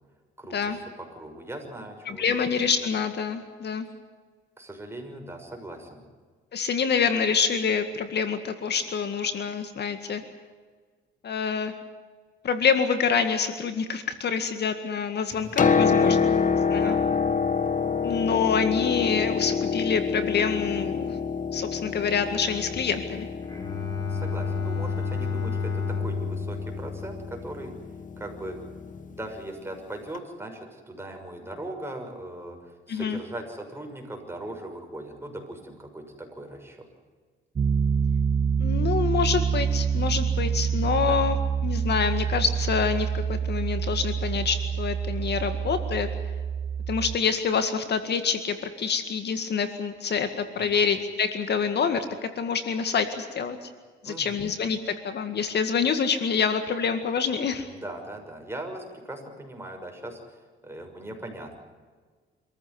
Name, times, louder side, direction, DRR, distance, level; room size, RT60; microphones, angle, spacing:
voice 1, 0.4-2.5 4.6-6.0 16.0-16.3 16.7-17.0 24.0-27.7 28.2-28.6 29.1-36.9 41.0-41.2 50.6-50.8 54.0-54.4 57.7-61.6, right 1 dB, 10° right, 3 dB, 6.4 m, -39 dB
voice 2, 2.1-3.9 6.5-10.2 11.2-11.7 12.4-16.3 16.7-17.0 18.0-21.1 21.5-23.3 32.9-33.2 38.6-41.4 41.6-46.1 46.9-53.7 54.0-57.7, left 6 dB, 55° left, 9 dB, 2.0 m, -26 dB
Piano, 15.3-29.1 30.1-30.2, left 5 dB, 40° left, 1.5 m, -27 dB
Bowed string instrument, 23.4-27.9, left 5 dB, 20° left, 6.5 m, -31 dB
Piano 2, 37.6-47.2, right 7 dB, 35° right, 0.8 m, -26 dB
26.0 x 14.5 x 9.6 m, 1.5 s
cardioid pair, 90°, 20 cm